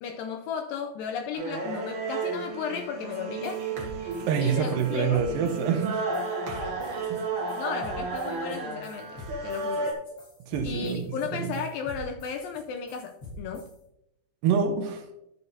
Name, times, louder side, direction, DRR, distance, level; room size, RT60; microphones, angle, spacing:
voice 1, 0.0-3.6 4.4-5.2 6.6-7.2 7.6-9.9 10.6-13.7, left 6 dB, 85° left, 5 dB, 2.1 m, -35 dB
Carnatic varnam by Prasanna in Mohanam raaga, 1.3-9.9, right 3 dB, 55° right, 2.7 m, -33 dB
sound 1, 3.1-3.2 3.4-13.8, left 1 dB, 40° left, 4.3 m, -46 dB
voice 2, 4.3-6.0 7.1-7.2 10.5-11.1 11.4-11.5 14.4-15.0, right 7 dB, 75° right, 6 dB, 2.3 m, -26 dB
12.5 x 7.8 x 2.7 m, 0.84 s
omnidirectional pair, 4.5 m